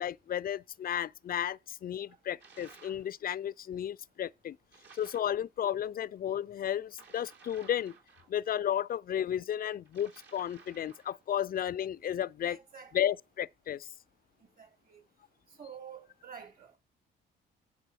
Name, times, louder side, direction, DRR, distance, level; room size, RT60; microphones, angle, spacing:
voice 1, 0.0-4.6 4.9-7.9 8.3-12.6 12.9-13.9, left 10 dB, 45° left, 0.5 m, -33 dB
sound 1, 2.4-3.1 4.7-5.4 6.9-8.6 9.9-11.2, right 5 dB, 60° right, 3.2 m, -56 dB
voice 2, 12.4-13.1 14.6-15.0 15.6-16.8, right 7 dB, 45° right, 3.1 m, -49 dB
11.0 x 4.7 x 7.9 m
cardioid pair, 90°, 20 cm